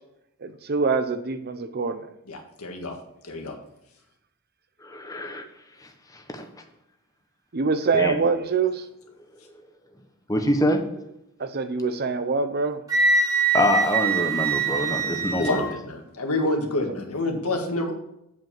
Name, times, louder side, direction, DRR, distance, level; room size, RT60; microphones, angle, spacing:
voice 1, 0.4-2.1 7.5-8.8 11.4-12.8, right 4 dB, 45° right, 10 dB, 0.7 m, -24 dB
voice 2, 2.3-3.0 3.2-3.6 15.4-17.9, left 2 dB, 90° left, 3 dB, 1.7 m, -28 dB
voice 3, 4.8-5.4 6.3-6.5 7.9-8.2 10.3-10.8 13.5-15.7, left 1 dB, 15° left, 4 dB, 1.0 m, -24 dB
Wind instrument woodwind instrument, 12.9-15.7, right 4 dB, 15° right, 1.7 m, -23 dB
7.9 x 5.1 x 7.4 m, 0.83 s
head